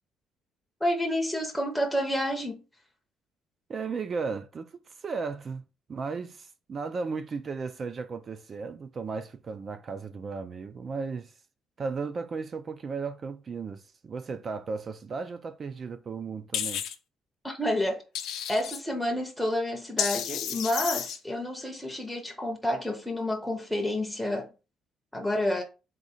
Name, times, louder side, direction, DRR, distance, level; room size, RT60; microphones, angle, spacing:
voice 1, 0.8-2.6 17.4-18.0 18.5-24.5 25.1-25.6, left 1 dB, ahead, 0.6 m, -29 dB
voice 2, 3.7-11.3 11.8-16.8, right 4 dB, 35° right, 0.3 m, -35 dB
sound 1, 16.5-16.9 18.1-18.8 20.0-21.2, left 9 dB, 80° left, 0.6 m, -31 dB
3.8 x 2.7 x 4.1 m
cardioid pair, 140°, 0 cm